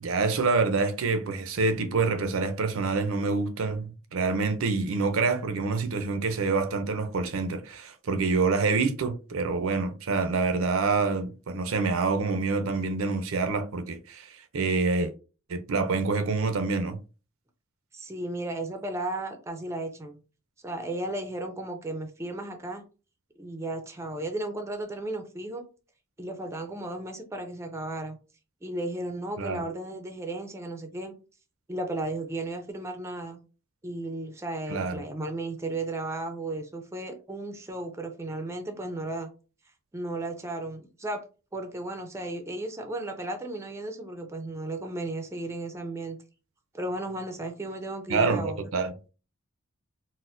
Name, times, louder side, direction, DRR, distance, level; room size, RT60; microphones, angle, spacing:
voice 1, 0.0-15.1 15.5-17.0 29.4-29.6 34.7-35.0 48.1-48.9, right 4 dB, 75° right, 0.5 m, -27 dB
voice 2, 17.9-20.2 20.6-22.8 23.4-25.6 26.2-28.2 28.6-31.1 31.7-33.4 33.8-39.3 39.9-41.2 41.5-46.2 46.7-48.6, right 2 dB, 15° right, 0.4 m, -34 dB
4.1 x 2.1 x 2.5 m
head